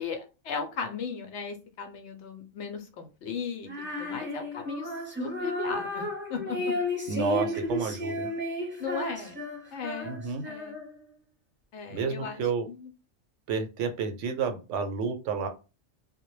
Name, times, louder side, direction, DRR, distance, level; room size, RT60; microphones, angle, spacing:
voice 1, 0.0-6.8 8.5-9.4 9.7-10.2 10.4-10.8 11.7-12.4 12.7-12.9, left 6 dB, 70° left, 6 dB, 0.8 m, -37 dB
Female singing, 3.7-11.0, left 1 dB, 10° right, 0.7 m, -33 dB
voice 2, 7.1-8.3 10.0-10.4 11.9-12.7 13.5-15.5, right 5 dB, 75° right, 6 dB, 0.9 m, -30 dB
2.2 x 2.1 x 3.0 m, 0.31 s
omnidirectional pair, 1.3 m